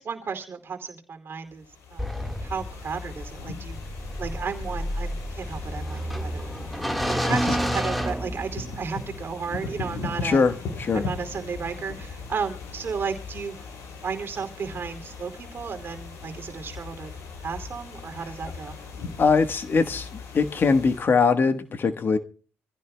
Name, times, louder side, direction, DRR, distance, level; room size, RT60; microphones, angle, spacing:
voice 1, 0.0-1.6 1.9-2.0 2.4-3.8 4.2-6.5 7.1-10.4 10.9-13.5 14.0-17.1 17.4-18.7, right 5 dB, 45° right, 2.6 m, -33 dB
sound 1, 1.5-21.0, left 4 dB, 75° left, 6.3 m, -39 dB
sound 2, 2.0-8.9, equal, ahead, 1.6 m, -30 dB
voice 2, 7.2-7.6 10.2-11.1 18.2-18.3 19.2-22.2, left 4 dB, 45° left, 1.3 m, -22 dB
26.0 x 15.5 x 2.2 m
cardioid pair, 90°, 5 cm